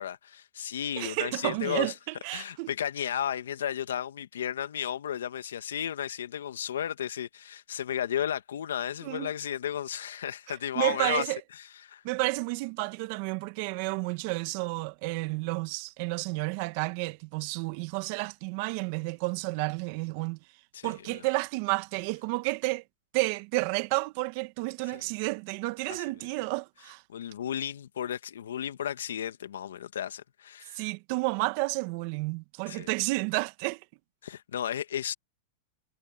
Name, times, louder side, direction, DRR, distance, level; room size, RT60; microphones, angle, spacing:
voice 1, 0.0-1.9 2.3-12.0 20.7-21.2 24.9-25.1 25.9-26.0 27.1-30.9 32.7-32.9 34.2-35.1, left 9 dB, 85° left, 2.0 m, -34 dB
voice 2, 1.0-2.7 9.0-9.3 10.8-11.4 12.0-20.4 20.8-22.8 23.1-27.0 30.7-33.8, right 25 dB, 55° right, 1.8 m, -31 dB
hypercardioid pair, 115°, 0 cm